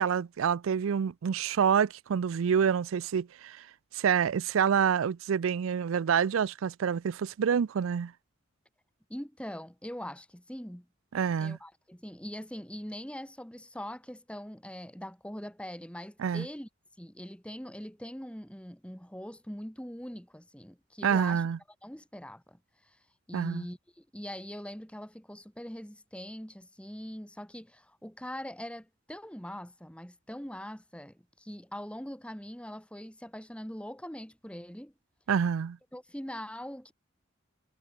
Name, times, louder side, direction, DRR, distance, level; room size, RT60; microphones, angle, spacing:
voice 1, 0.0-3.6 3.9-8.1 11.1-11.6 16.2-16.5 21.0-21.6 23.3-23.6 35.3-35.8, right 7 dB, 80° right, 0.4 m, -27 dB
voice 2, 9.1-10.9 11.4-16.7 17.0-21.4 21.8-22.6 22.8-23.0 23.3-34.9 35.9-36.9, equal, 5° left, 2.2 m, -42 dB
head